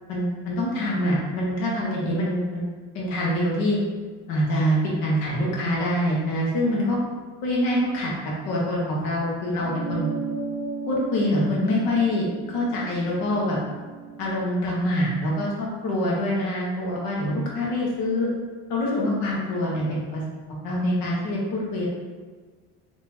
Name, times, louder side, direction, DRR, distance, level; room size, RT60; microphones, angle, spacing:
voice 1, 0.0-2.6 2.9-3.8 4.3-7.0 7.4-8.1 8.4-10.1 10.9-13.6 14.2-18.3 18.7-20.2 20.5-21.9, left 1 dB, 80° left, -4 dB, 1.2 m, -25 dB
sound 1, 9.6-14.4, right 4 dB, 15° right, 0.3 m, -35 dB
3.7 x 2.9 x 2.9 m, 1.4 s
cardioid pair, 150°, 35 cm